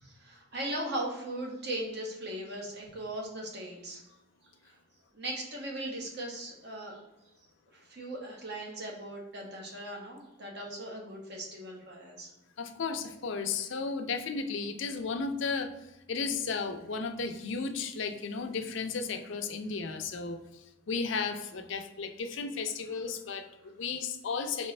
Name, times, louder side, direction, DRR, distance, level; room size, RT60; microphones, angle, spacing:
voice 1, 0.0-4.0 4.6-4.7 5.1-7.0 7.7-12.3, right 1 dB, 55° right, -1 dB, 1.1 m, -38 dB
voice 2, 12.6-24.7, left 4 dB, 60° left, 6 dB, 0.5 m, -34 dB
4.2 x 3.0 x 3.2 m, 0.96 s
head